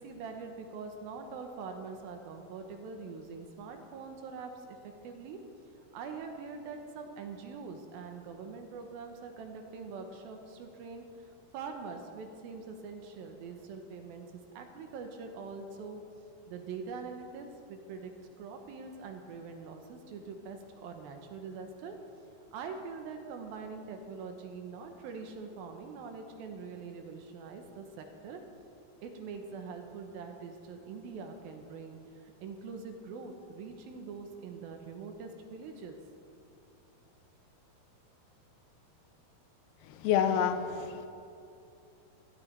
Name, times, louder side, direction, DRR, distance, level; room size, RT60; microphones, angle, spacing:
voice 1, 0.0-5.4 5.8-11.1 11.5-16.0 16.5-18.1 18.4-22.0 22.5-28.4 29.0-36.0, right 5 dB, 75° right, 5 dB, 2.6 m, -44 dB
voice 2, 39.8-41.1, left 8 dB, 80° left, 8 dB, 2.6 m, -28 dB
16.5 x 12.5 x 3.4 m, 2.6 s
omnidirectional pair, 4.6 m